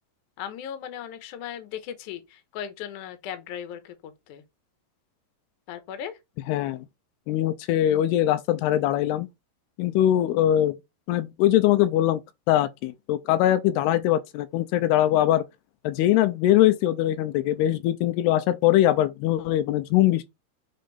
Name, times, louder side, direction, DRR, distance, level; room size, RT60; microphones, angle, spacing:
voice 1, 0.4-4.4 5.7-6.2, left 9 dB, 70° left, 2.1 m, -37 dB
voice 2, 6.5-6.9 7.3-9.3 9.8-10.8 11.1-12.2 12.5-15.4 15.8-20.3, left 13 dB, 85° left, 2.6 m, -22 dB
6.6 x 3.7 x 4.0 m
omnidirectional pair, 4.6 m